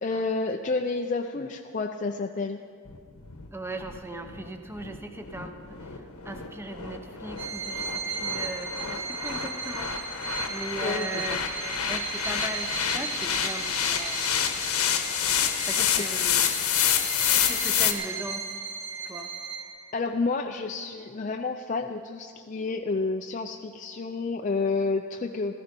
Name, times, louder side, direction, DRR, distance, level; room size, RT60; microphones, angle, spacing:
voice 1, 0.0-2.6 10.8-11.4 16.0-16.1 19.9-25.6, left 3 dB, 35° left, 5 dB, 0.4 m, -30 dB
sound 1, 2.9-17.9, left 8 dB, 90° left, 1.1 m, -28 dB
voice 2, 3.5-5.6 5.8-9.9 10.5-11.5 11.9-14.6 15.7-16.5 17.5-18.5 19.0-19.3, right 1 dB, 10° right, 6 dB, 0.7 m, -38 dB
Bowed string instrument, 7.4-19.9, right 5 dB, 65° right, 2.7 m, -36 dB
15.5 x 14.5 x 5.2 m, 2.1 s
head